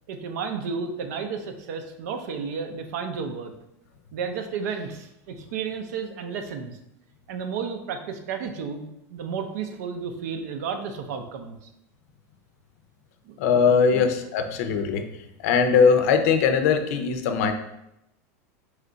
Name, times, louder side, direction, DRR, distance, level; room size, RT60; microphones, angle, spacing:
voice 1, 0.1-3.5 4.1-6.8 7.3-8.8 9.1-11.6 13.2-13.4 13.9-14.1, right 6 dB, 75° right, 6 dB, 0.6 m, -32 dB
voice 2, 13.4-15.0 15.4-17.5, left 6 dB, 70° left, 7 dB, 0.5 m, -20 dB
4.3 x 2.4 x 3.8 m, 0.85 s
supercardioid pair, 140°, 9 cm